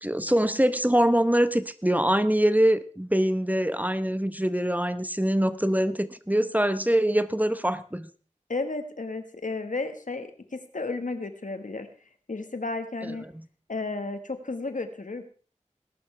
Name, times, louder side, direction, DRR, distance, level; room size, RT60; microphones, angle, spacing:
voice 1, 0.0-8.1 13.0-13.1, equal, 10° right, 12 dB, 0.9 m, -24 dB
voice 2, 8.5-11.9 12.3-13.3 13.7-15.2, left 3 dB, 90° left, 8 dB, 1.5 m, -33 dB
19.5 x 11.5 x 3.3 m, 0.40 s
wide cardioid pair, 45°, 13 cm